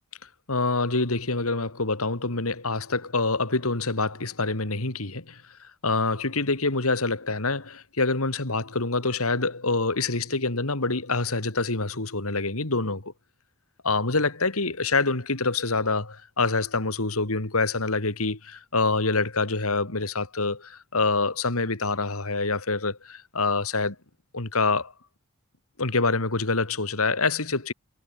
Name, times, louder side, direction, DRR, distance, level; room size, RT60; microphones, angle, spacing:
voice 1, 0.5-13.1 13.8-24.0 24.3-24.9 25.8-27.7, left 3 dB, 80° left, 2.7 m, -26 dB
head